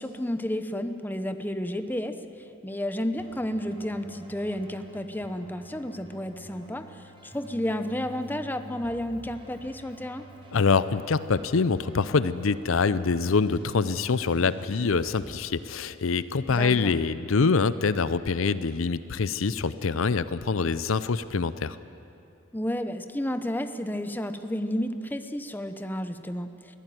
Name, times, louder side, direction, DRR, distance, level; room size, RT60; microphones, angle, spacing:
voice 1, 0.0-2.2 2.6-10.3 16.5-16.9 22.5-26.5, left 1 dB, 10° left, 9 dB, 0.8 m, -31 dB
Keyboard (musical), 3.2-15.2, right 1 dB, 25° right, 4.9 m, -48 dB
voice 2, 10.5-21.8, left 4 dB, 70° left, 15 dB, 0.6 m, -25 dB
22.5 x 15.5 x 9.3 m, 2.7 s
head